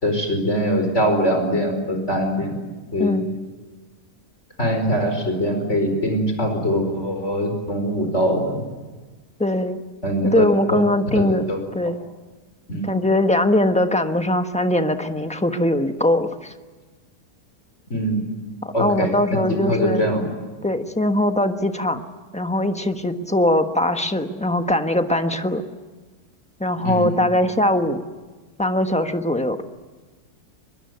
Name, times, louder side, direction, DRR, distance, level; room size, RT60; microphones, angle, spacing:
voice 1, 0.0-2.5 2.9-3.2 4.6-8.6 10.0-10.8 11.1-11.6 12.7-12.9 17.9-18.2 18.7-20.3 26.8-27.1, equal, 45° left, 5 dB, 5.2 m, -22 dB
voice 2, 9.4-9.8 10.3-12.0 12.8-16.5 18.6-20.0 20.6-22.0 22.3-25.6 26.6-28.0 28.6-29.6, left 1 dB, 5° left, 7 dB, 1.1 m, -21 dB
24.0 x 22.0 x 9.5 m, 1.3 s
omnidirectional pair, 1.7 m